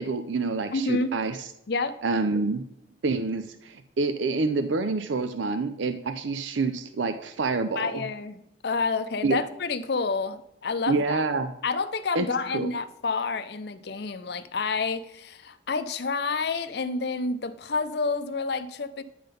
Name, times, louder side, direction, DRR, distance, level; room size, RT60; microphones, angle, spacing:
voice 1, 0.0-1.5 2.0-2.6 3.0-8.1 9.2-9.4 10.9-11.5 12.1-12.7, right 3 dB, 75° right, 0.5 m, -27 dB
voice 2, 0.7-1.1 1.7-2.0 7.8-8.4 8.6-11.2 11.6-19.0, left 4 dB, 55° left, 0.5 m, -29 dB
10.5 x 3.8 x 5.2 m
head